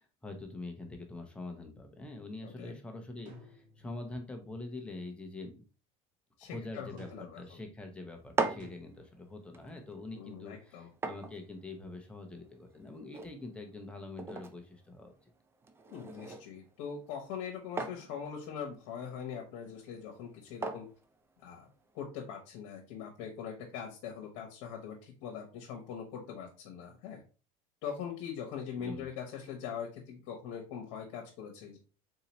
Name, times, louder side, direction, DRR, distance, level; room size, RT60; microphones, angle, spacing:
voice 1, 0.0-5.5 6.4-15.1 28.8-29.1, left 2 dB, 5° left, 3 dB, 0.7 m, -44 dB
voice 2, 2.4-2.7 6.4-7.6 10.1-10.9 15.9-20.9 21.4-21.7 21.9-27.2 27.8-31.8, left 7 dB, 75° left, 1 dB, 1.0 m, -42 dB
sound 1, 3.2-4.2 7.0-7.6 8.6-8.7, equal, 55° right, 1.3 m, -53 dB
sound 2, 8.1-22.0, right 4 dB, 15° right, 0.4 m, -42 dB
3.9 x 2.8 x 2.9 m, 0.35 s
cardioid pair, 135°, 15 cm